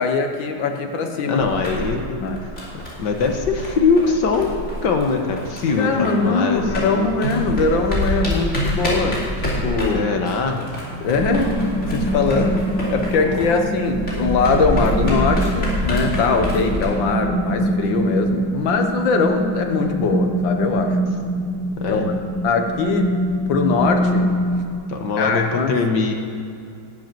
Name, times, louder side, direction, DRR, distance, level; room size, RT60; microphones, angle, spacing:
voice 1, 0.0-1.5 2.2-2.4 5.8-10.1 11.0-11.6 11.9-21.0 21.9-22.0 22.4-23.2 23.5-24.4 25.2-25.7, left 4 dB, 85° left, 5 dB, 1.9 m, -21 dB
voice 2, 1.2-2.2 3.0-7.1 9.9-10.7 21.8-22.1 24.9-26.1, left 4 dB, 70° left, 4 dB, 1.8 m, -22 dB
sound 1, 1.4-6.3 6.5-16.9, left 1 dB, 40° left, 3.3 m, -27 dB
sound 2, 11.2-24.8, equal, 10° left, 0.6 m, -24 dB
12.0 x 7.8 x 9.1 m, 2.5 s
omnidirectional pair, 2.0 m